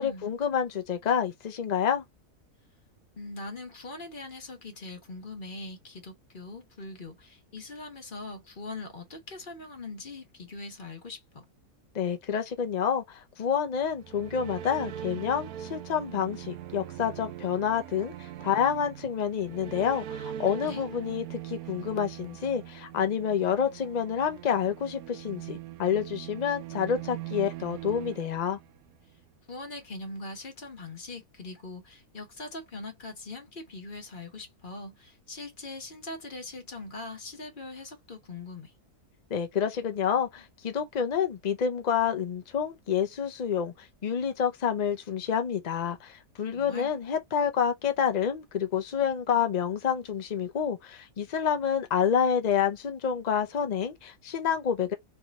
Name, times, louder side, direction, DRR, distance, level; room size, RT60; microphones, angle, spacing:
voice 1, 0.0-2.0 11.9-28.6 39.3-54.9, left 8 dB, 70° left, 0.4 m, -28 dB
voice 2, 3.2-11.4 20.5-20.8 29.5-38.7 46.5-46.9, left 2 dB, 35° left, 1.2 m, -41 dB
sound 1, 13.8-29.1, right 12 dB, 75° right, 1.0 m, -41 dB
3.3 x 2.9 x 3.9 m
omnidirectional pair, 1.6 m